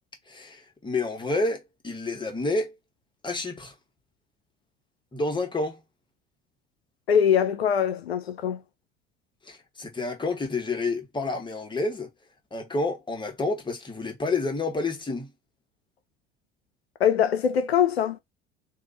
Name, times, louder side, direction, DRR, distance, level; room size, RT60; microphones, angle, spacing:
voice 1, 0.3-2.7 3.2-3.7 5.1-5.8 9.4-12.1 12.5-15.3, left 3 dB, 15° left, 1.4 m, -29 dB
voice 2, 7.1-8.6 17.0-18.2, left 8 dB, 90° left, 0.5 m, -22 dB
3.0 x 2.5 x 3.9 m
hypercardioid pair, 70°, 30 cm